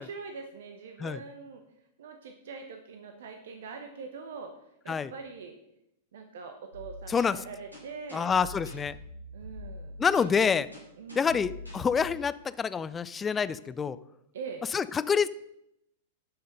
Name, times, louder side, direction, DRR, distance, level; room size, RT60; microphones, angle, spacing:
voice 1, 0.0-1.6 2.0-4.5 4.8-5.5 6.1-8.3 9.3-10.0 11.0-11.4 14.3-14.6, right 5 dB, 60° right, 5 dB, 1.0 m, -43 dB
sound 1, 6.7-12.1, left 1 dB, 85° right, 3.8 m, -45 dB
voice 2, 8.1-9.0 10.0-10.7 11.2-14.0 14.7-15.3, left 6 dB, 15° left, 16 dB, 0.4 m, -27 dB
11.5 x 5.8 x 5.4 m, 0.82 s
figure-of-eight pair, 100°, 0 cm